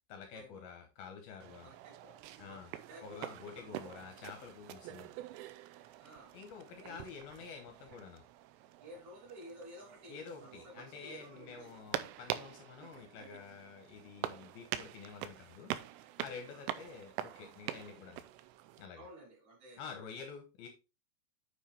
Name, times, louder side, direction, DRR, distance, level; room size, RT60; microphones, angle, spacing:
voice 1, 0.1-1.7 2.4-2.7 3.0-5.1 6.3-8.2 10.1-18.2 18.8-19.1 19.8-20.7, left 6 dB, 75° left, 5 dB, 2.3 m, -49 dB
sound 1, 1.4-18.9, right 13 dB, 85° right, 3.2 m, -45 dB
voice 2, 1.6-2.1 2.5-4.0 6.0-6.3 6.8-7.0 7.3-7.5 8.8-11.8 16.5-16.6 19.0-20.0, right 1 dB, 40° right, -7 dB, 4.3 m, -53 dB
9.1 x 5.8 x 3.4 m, 0.29 s
omnidirectional pair, 5.6 m